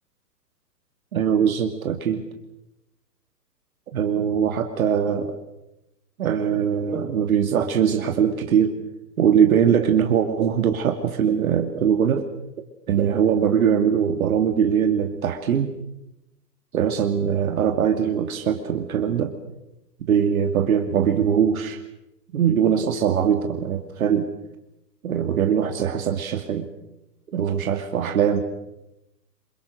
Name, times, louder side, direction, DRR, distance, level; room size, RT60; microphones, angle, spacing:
voice 1, 1.1-2.2 3.9-5.3 6.2-8.8 9.2-12.3 12.9-15.7 16.7-19.4 20.0-21.8 22.3-24.3 25.0-26.7 27.3-28.4, right 8 dB, 55° right, 5 dB, 2.5 m, -21 dB
27.5 x 24.0 x 6.5 m, 0.91 s
figure-of-eight pair, 125°, 49 cm